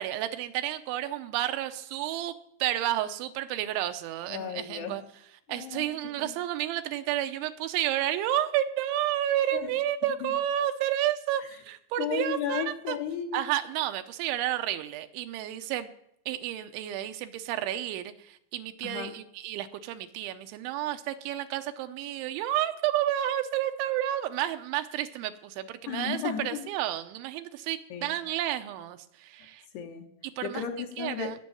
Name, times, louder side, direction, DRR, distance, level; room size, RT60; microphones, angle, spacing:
voice 1, 0.0-2.3 2.6-5.0 5.5-13.0 13.3-15.9 16.3-29.7 30.2-30.6 31.0-31.4, right 12 dB, 85° right, 9 dB, 3.1 m, -31 dB
voice 2, 4.3-5.0 5.5-5.9 6.2-6.3 9.5-9.7 10.2-10.3 12.0-13.4 18.8-19.1 25.9-26.7 27.9-28.2 29.7-30.1 30.4-31.3, left 8 dB, 70° left, 3 dB, 2.8 m, -34 dB
18.5 x 6.3 x 9.1 m, 0.73 s
omnidirectional pair, 5.5 m